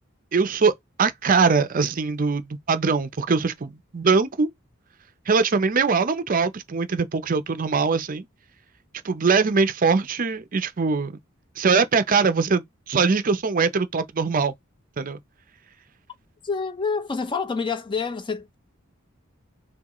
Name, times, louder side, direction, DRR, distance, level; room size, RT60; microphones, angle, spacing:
voice 1, 0.3-0.7 1.0-4.5 5.3-8.2 9.0-11.2 11.6-14.5 15.0-15.2, right 4 dB, 40° right, 0.5 m, -22 dB
voice 2, 16.4-18.6, left 5 dB, 25° left, 0.4 m, -27 dB
6.0 x 2.3 x 3.0 m
head